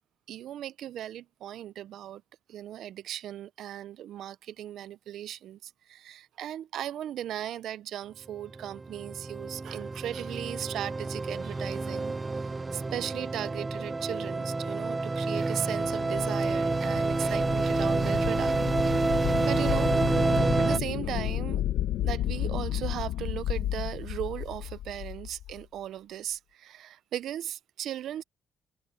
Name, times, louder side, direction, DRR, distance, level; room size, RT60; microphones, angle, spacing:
voice 1, 0.3-2.2 2.5-12.1 12.7-18.5 18.9-19.1 19.5-21.6 22.0-28.2, right 11 dB, 75° right, 0.6 m, -37 dB
sound 1, 8.3-20.8, right 3 dB, 25° right, 0.7 m, -28 dB
sound 2, 15.2-20.4, right 7 dB, 50° right, 4.6 m, -47 dB
sound 3, 15.6-25.6, left 12 dB, 85° left, 1.5 m, -33 dB
cardioid pair, 90°, 0 cm